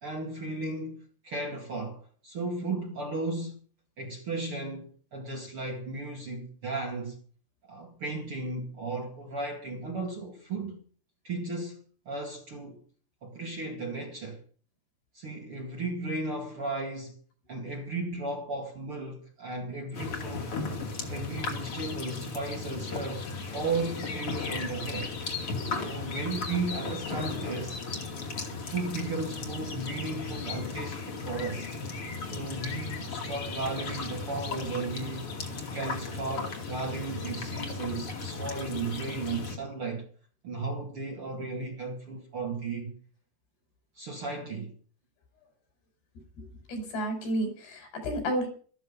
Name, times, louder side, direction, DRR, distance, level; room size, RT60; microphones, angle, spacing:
voice 1, 0.0-3.6 4.0-7.2 7.7-10.8 11.2-12.8 13.2-14.4 15.1-17.2 17.5-20.5 21.1-25.2 25.7-27.8 28.6-31.7 32.2-35.3 35.7-40.1 40.4-42.9 44.0-44.7, right 3 dB, 40° right, 2.4 m, -35 dB
sound 1, 19.9-39.6, left 4 dB, 40° left, 2.9 m, -36 dB
voice 2, 46.4-48.5, right 1 dB, 70° left, 7.4 m, -31 dB
14.0 x 13.5 x 5.5 m
omnidirectional pair, 4.8 m